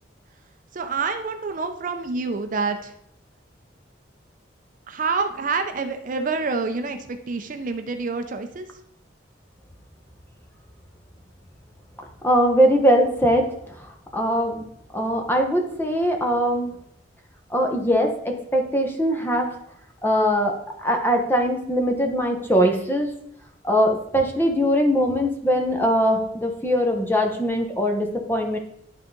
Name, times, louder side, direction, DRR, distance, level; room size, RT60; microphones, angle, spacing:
voice 1, 0.7-2.9 4.9-8.7, right 4 dB, 45° right, 7 dB, 0.5 m, -27 dB
voice 2, 12.2-13.5 14.1-14.6 14.9-16.7 17.5-19.5 20.0-23.1 23.6-28.6, equal, 10° left, 3 dB, 0.9 m, -21 dB
11.0 x 3.8 x 3.8 m, 0.74 s
head